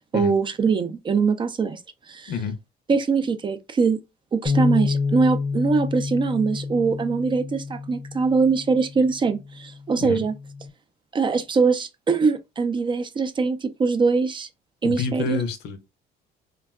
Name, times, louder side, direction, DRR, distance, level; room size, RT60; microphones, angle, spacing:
voice 1, 0.1-1.8 2.1-2.3 2.9-4.0 4.3-10.3 11.1-14.5 14.8-15.4, right 4 dB, 30° right, 0.4 m, -22 dB
Bass guitar, 4.5-10.7, left 4 dB, 30° left, 0.5 m, -28 dB
voice 2, 14.8-15.8, left 6 dB, 80° left, 0.6 m, -28 dB
3.5 x 2.2 x 2.3 m
cardioid pair, 110°, 17 cm